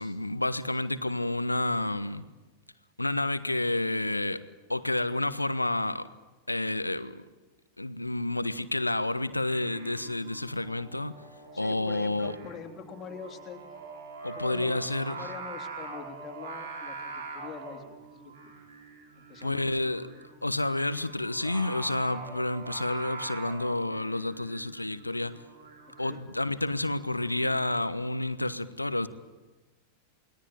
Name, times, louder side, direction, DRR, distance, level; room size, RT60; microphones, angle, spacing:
voice 1, 0.0-2.2 3.0-4.4 4.7-6.1 6.5-7.2 7.8-11.1 11.6-12.3 14.2-15.1 19.4-20.0 20.4-25.4 26.0-29.1, left 2 dB, 85° left, 14 dB, 1.2 m, -30 dB
Singing, 9.3-27.8, right 4 dB, 60° right, 6.2 m, -44 dB
voice 2, 11.5-13.6 14.3-18.6 19.3-19.6 26.0-26.3, left 7 dB, 25° left, 3 dB, 3.5 m, -44 dB
29.0 x 21.0 x 9.2 m, 1.2 s
figure-of-eight pair, 90°, 0 cm